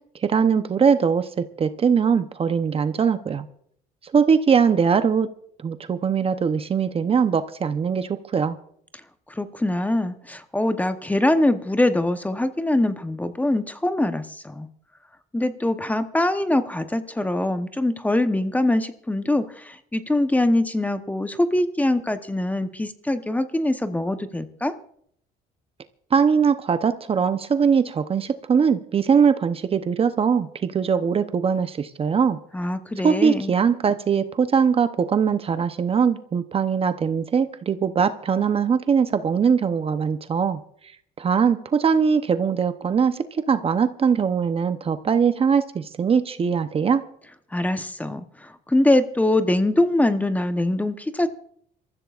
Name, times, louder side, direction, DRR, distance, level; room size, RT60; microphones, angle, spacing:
voice 1, 0.2-3.5 4.1-5.3 5.6-8.6 26.1-32.4 33.0-40.6 41.2-47.0, right 6 dB, 35° right, 10 dB, 0.8 m, -21 dB
voice 2, 9.3-14.7 15.3-24.7 32.5-33.5 47.5-51.3, left 1 dB, 10° left, 9 dB, 0.9 m, -23 dB
27.0 x 14.5 x 2.5 m, 0.66 s
cardioid pair, 110°, 17 cm